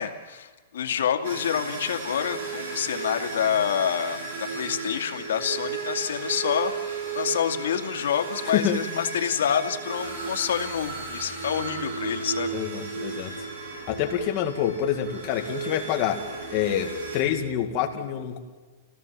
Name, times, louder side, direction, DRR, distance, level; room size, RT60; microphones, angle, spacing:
voice 1, 0.0-12.6, left 8 dB, 90° left, 4 dB, 2.4 m, -27 dB
sound 1, 1.2-17.2, right 4 dB, 55° right, 7.8 m, -35 dB
sound 2, 10.0-17.8, right 2 dB, 35° right, 4.0 m, -50 dB
voice 2, 12.5-13.3 13.9-18.4, left 9 dB, 30° left, 3 dB, 2.2 m, -27 dB
29.0 x 17.5 x 7.5 m, 1.4 s
supercardioid pair, 180°, 0 cm